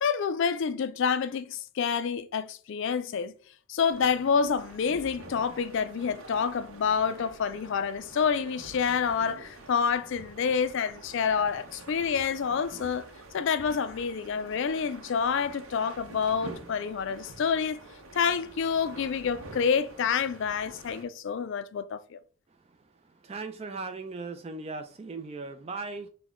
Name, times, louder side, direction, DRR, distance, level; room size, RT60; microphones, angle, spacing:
voice 1, 0.0-3.3 3.7-13.1 13.3-17.8 18.1-22.2, left 6 dB, 55° left, 0.3 m, -28 dB
sound 1, 3.9-21.0, right 2 dB, 65° right, 0.8 m, -47 dB
voice 2, 23.2-26.1, right 3 dB, 25° right, 0.3 m, -37 dB
6.1 x 2.2 x 3.5 m
head